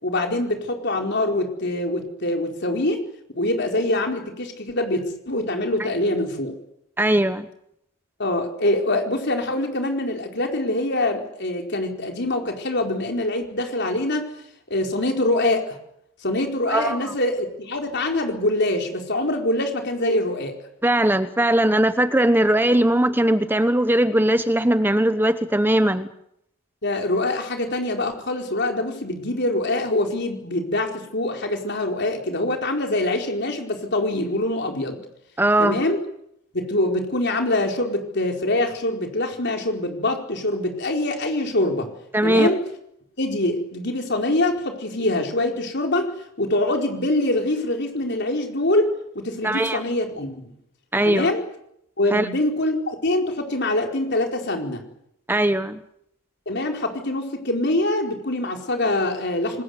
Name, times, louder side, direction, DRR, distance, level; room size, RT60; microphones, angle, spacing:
voice 1, 0.0-3.0 3.4-6.5 8.2-14.3 14.7-15.8 16.2-20.6 26.8-35.0 35.6-36.0 36.5-41.9 42.2-42.6 43.2-46.1 46.4-50.4 51.0-51.4 52.0-54.8 56.5-59.6, left 1 dB, 55° left, 3 dB, 4.7 m, -24 dB
voice 2, 7.0-7.5 16.7-17.1 20.8-26.1 35.4-35.8 42.1-42.5 49.4-49.8 50.9-51.3 52.1-52.3 55.3-55.8, right 1 dB, 10° right, 10 dB, 0.9 m, -19 dB
27.0 x 20.5 x 8.1 m, 0.76 s
head